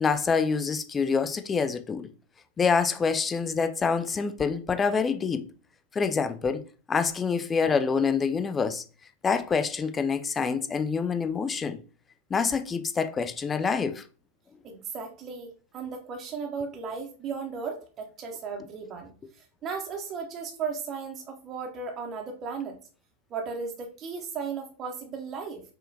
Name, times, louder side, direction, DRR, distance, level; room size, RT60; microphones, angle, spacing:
voice 1, 0.0-2.1 2.6-5.5 5.9-6.6 6.9-8.8 9.2-11.8 12.3-14.0, left 5 dB, 20° left, 0.4 m, -26 dB
voice 2, 14.6-22.8 23.3-25.6, right 5 dB, 30° right, 0.6 m, -36 dB
5.4 x 2.2 x 2.6 m
figure-of-eight pair, 90°, 0 cm